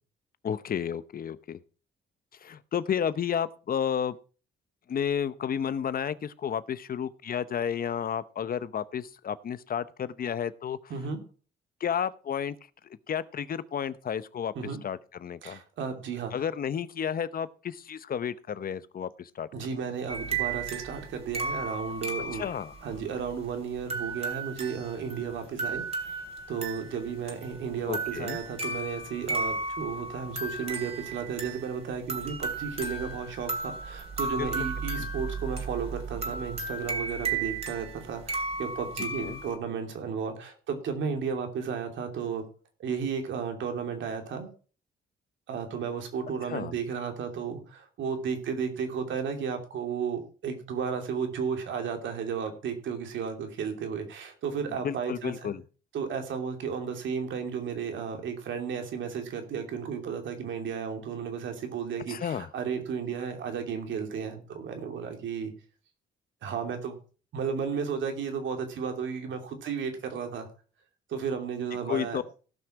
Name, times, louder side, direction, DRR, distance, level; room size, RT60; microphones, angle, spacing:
voice 1, 0.4-1.6 2.4-4.2 4.9-10.8 11.8-12.5 13.1-14.5 14.8-15.6 16.3-19.5 22.3-22.7 27.9-28.4 34.4-34.7 39.2-39.4 46.5-46.7 54.8-55.6 62.1-62.5 71.9-72.2, left 8 dB, 45° left, 15 dB, 0.8 m, -32 dB
voice 2, 15.4-16.3 19.5-22.4 22.8-26.2 26.5-42.4 42.8-44.5 45.5-55.5 55.9-65.5 66.4-67.0 67.3-70.5 71.1-72.2, right 6 dB, 70° right, 5 dB, 2.8 m, -33 dB
sound 1, 20.1-39.6, right 3 dB, 30° right, 3.1 m, -35 dB
16.0 x 6.0 x 4.9 m, 0.38 s
cardioid pair, 90°, 20 cm